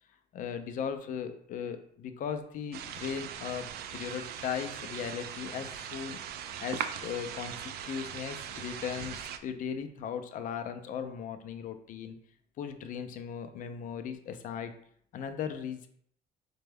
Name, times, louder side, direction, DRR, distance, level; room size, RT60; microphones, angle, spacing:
voice 1, 0.3-12.2 12.6-14.7 15.1-15.9, left 7 dB, 50° left, 8 dB, 0.4 m, -38 dB
sound 1, 2.7-9.4, right 9 dB, 70° right, 0.4 m, -40 dB
4.1 x 2.2 x 3.3 m, 0.64 s
cardioid pair, 110°, 17 cm